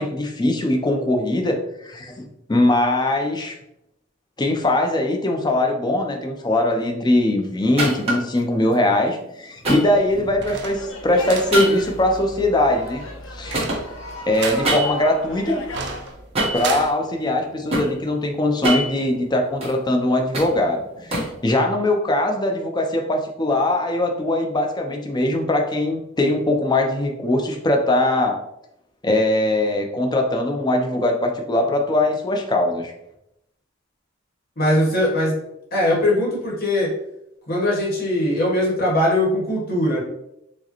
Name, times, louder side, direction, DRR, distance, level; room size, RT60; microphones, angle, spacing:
voice 1, 0.0-2.1 2.5-3.6 4.4-13.0 13.3-13.7 14.3-15.6 16.5-28.4 29.0-32.9, left 1 dB, 20° left, 3 dB, 0.5 m, -21 dB
sound 1, 7.8-8.4 9.6-10.6 11.5-13.3 13.5-15.2 16.3-16.7 17.3-17.9 18.4-19.8 20.1-21.4, right 1 dB, 30° right, 1.2 m, -26 dB
sound 2, 9.9-16.9, right 4 dB, 60° right, 0.4 m, -34 dB
sound 3, 10.7-16.1, left 1 dB, 75° left, 0.6 m, -36 dB
voice 2, 34.6-35.3 35.7-36.9 37.5-40.0, left 1 dB, 50° left, -3 dB, 1.2 m, -20 dB
4.7 x 2.2 x 2.9 m, 0.82 s
head